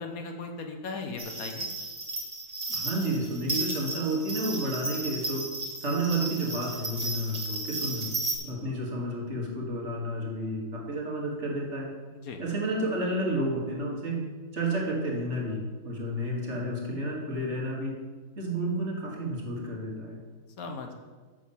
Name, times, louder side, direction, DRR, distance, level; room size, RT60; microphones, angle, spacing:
voice 1, 0.0-1.7 12.1-12.4 20.6-20.9, left 4 dB, 65° left, 4 dB, 1.3 m, -37 dB
sound 1, 1.2-8.4, right 2 dB, 25° right, 1.5 m, -34 dB
voice 2, 2.7-5.4 5.8-8.1 8.4-11.9 12.4-14.2 14.5-18.0 18.4-20.2, right 1 dB, 45° right, -2 dB, 1.9 m, -31 dB
6.4 x 6.1 x 7.1 m, 1.4 s
omnidirectional pair, 1.7 m